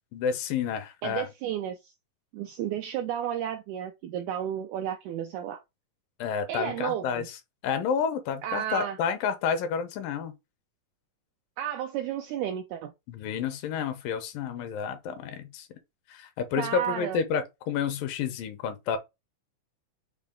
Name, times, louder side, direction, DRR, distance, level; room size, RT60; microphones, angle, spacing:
voice 1, 0.1-1.3 6.2-7.3 7.6-10.3 13.1-15.7 16.1-19.0, left 7 dB, 80° left, 2.5 m, -30 dB
voice 2, 1.0-1.9 2.3-5.6 6.5-7.3 8.4-9.0 11.6-12.9 16.6-17.2, right 10 dB, 85° right, 1.7 m, -32 dB
6.6 x 2.2 x 3.6 m
omnidirectional pair, 4.0 m